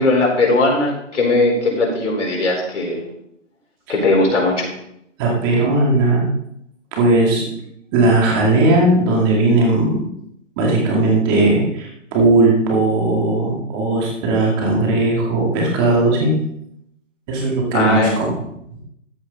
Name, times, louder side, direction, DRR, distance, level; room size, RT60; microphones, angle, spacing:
voice 1, 0.0-3.0 3.9-4.7 17.7-18.1, left 2 dB, 70° left, -1 dB, 4.5 m, -18 dB
voice 2, 5.2-6.3 6.9-7.5 7.9-10.0 10.6-16.3 17.3-18.3, right 2 dB, 15° right, -2 dB, 2.2 m, -17 dB
14.0 x 6.3 x 4.1 m, 0.76 s
hypercardioid pair, 165°, 38 cm